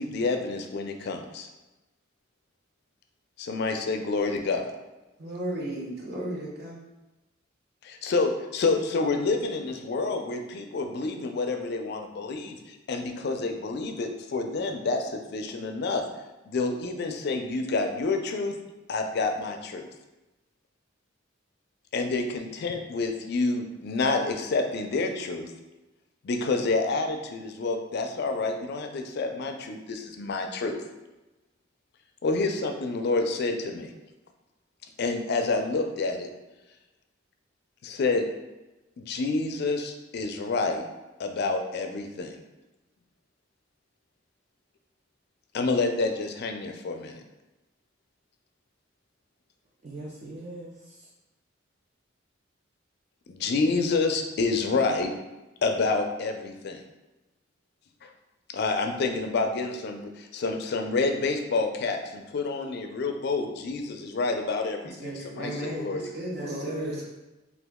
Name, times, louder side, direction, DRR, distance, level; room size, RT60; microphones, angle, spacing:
voice 1, 0.0-1.5 3.4-4.7 7.8-16.0 16.5-18.6 18.9-19.9 21.9-25.5 26.2-30.8 32.2-33.9 35.0-36.3 37.8-38.3 39.0-40.8 41.2-42.4 45.5-47.2 53.3-55.1 55.6-56.8 58.0-58.1 58.5-64.9 65.3-66.1, left 3 dB, 55° left, 5 dB, 0.4 m, -28 dB
voice 2, 5.2-6.8 65.0-67.1, right 1 dB, 55° right, -4 dB, 0.9 m, -34 dB
voice 3, 49.8-51.1 66.4-67.1, right 1 dB, 35° right, -4 dB, 0.4 m, -39 dB
2.9 x 2.4 x 3.5 m, 1.0 s
head